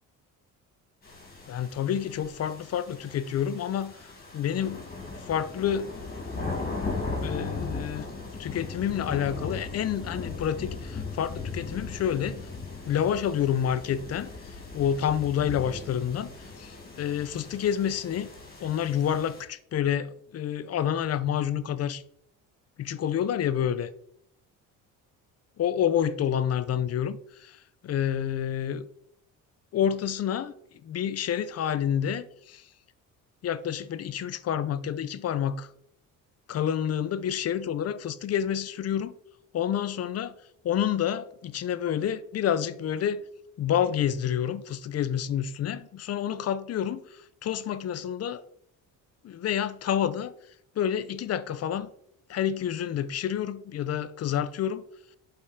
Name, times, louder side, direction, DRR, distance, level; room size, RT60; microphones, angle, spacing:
sound 1, 1.0-19.4, left 3 dB, 30° left, 3.5 m, -38 dB
voice 1, 1.5-3.9 4.3-5.9 7.2-8.1 8.4-12.4 12.9-14.3 14.7-16.3 16.6-18.3 18.6-22.0 22.8-23.9 25.6-28.9 29.7-30.5 30.8-32.7 33.4-35.7 36.5-39.1 39.5-40.3 40.6-43.2 43.6-48.4 49.2-50.3 50.8-51.9 52.3-54.8, left 9 dB, 50° left, 0.8 m, -28 dB
11.0 x 5.3 x 5.7 m
cardioid pair, 125°, 33 cm